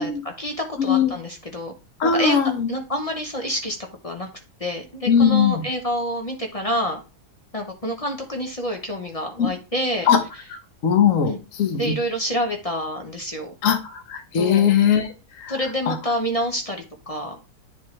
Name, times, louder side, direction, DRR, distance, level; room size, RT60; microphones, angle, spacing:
voice 1, 0.0-1.7 2.0-2.4 2.7-3.8 4.0-4.3 4.6-7.0 7.5-10.1 11.3-11.4 11.7-13.5 14.3-14.9 15.5-17.4, equal, 30° left, 3 dB, 0.7 m, -27 dB
voice 2, 0.8-1.1 2.0-2.7 5.1-5.6 9.4-9.5 10.1-10.2 10.5-11.9 13.6-15.5 15.9-16.0, left 7 dB, 60° left, 6 dB, 1.3 m, -20 dB
9.6 x 3.7 x 3.2 m, 0.29 s
omnidirectional pair, 1.7 m